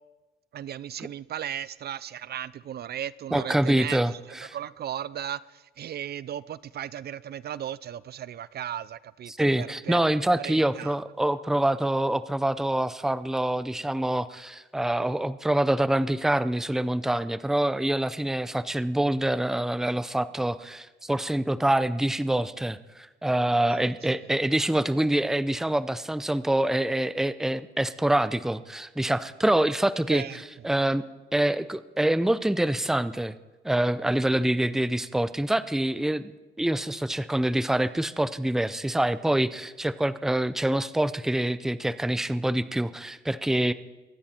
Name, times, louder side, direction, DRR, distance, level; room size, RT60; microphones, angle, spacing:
voice 1, 0.5-4.0 4.5-10.1 10.4-10.9 23.6-23.8 30.1-30.4, right 10 dB, 55° right, 0.4 m, -36 dB
voice 2, 3.3-4.6 9.3-31.0 31.3-33.4 33.6-36.3 36.6-43.7, right 1 dB, ahead, 0.5 m, -26 dB
23.5 x 10.0 x 4.4 m
cardioid pair, 90°, 20 cm